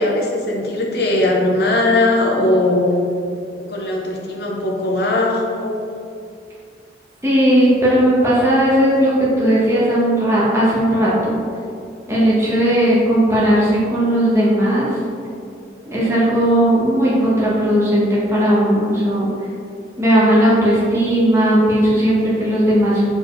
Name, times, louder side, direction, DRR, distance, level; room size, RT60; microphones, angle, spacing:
voice 1, 0.0-3.0 3.6-5.8, left 2 dB, 55° left, -1 dB, 1.0 m, -19 dB
voice 2, 7.2-11.4 12.1-14.9 15.9-19.3 20.0-23.2, equal, 15° right, -8 dB, 1.4 m, -16 dB
7.8 x 4.5 x 3.3 m, 2.4 s
head